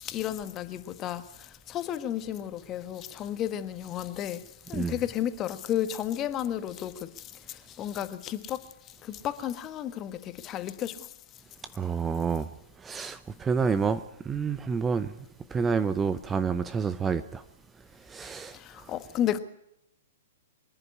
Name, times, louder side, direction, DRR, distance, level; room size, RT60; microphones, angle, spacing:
voice 1, 0.0-4.4 4.7-8.7 9.0-11.1 18.5-19.4, left 11 dB, 25° left, 1.4 m, -33 dB
voice 2, 11.7-12.5 12.8-15.1 15.5-17.4 18.1-18.6, right 5 dB, 15° right, 0.7 m, -28 dB
24.0 x 11.0 x 9.9 m
figure-of-eight pair, 115°, 0 cm